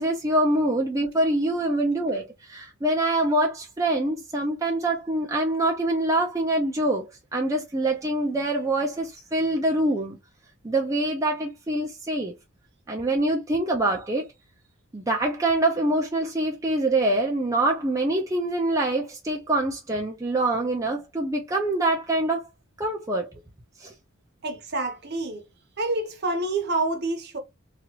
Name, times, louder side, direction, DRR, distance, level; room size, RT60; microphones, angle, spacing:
voice 1, 0.0-7.1 7.3-10.2 10.6-12.3 12.9-14.3 14.9-22.4 22.8-23.3 23.8-23.9, right 1 dB, 15° right, 0.5 m, -25 dB
voice 2, 24.4-25.4 25.8-27.4, right 2 dB, 50° right, 0.8 m, -27 dB
2.9 x 2.4 x 2.8 m
head